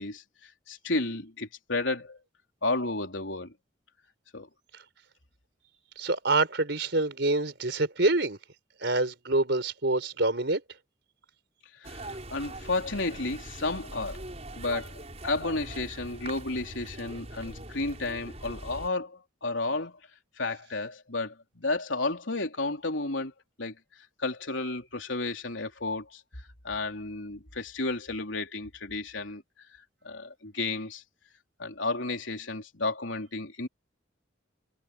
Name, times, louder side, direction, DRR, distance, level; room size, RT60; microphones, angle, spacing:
voice 1, 0.0-2.2 2.6-3.5 4.3-4.5 11.8-14.2 14.6-20.0 20.4-23.3 23.6-26.2 26.6-29.4 30.0-31.0 31.6-33.7, left 2 dB, 80° left, 3.6 m, -32 dB
voice 2, 6.0-8.4 8.8-10.6, right 2 dB, 65° right, 4.5 m, -26 dB
sound 1, 11.8-18.9, right 2 dB, 35° right, 6.8 m, -42 dB
head